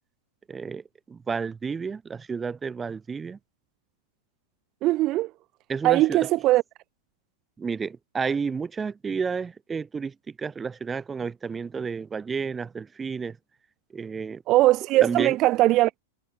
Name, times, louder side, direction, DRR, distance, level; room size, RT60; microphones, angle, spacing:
voice 1, 0.5-3.4 5.7-6.3 7.6-13.4 13.9-14.4 15.0-15.4, right 5 dB, 15° right, 4.4 m, -31 dB
voice 2, 4.8-5.3 5.8-6.6 14.5-16.0, right 17 dB, 40° right, 2.4 m, -20 dB
hypercardioid pair, 125°, 0 cm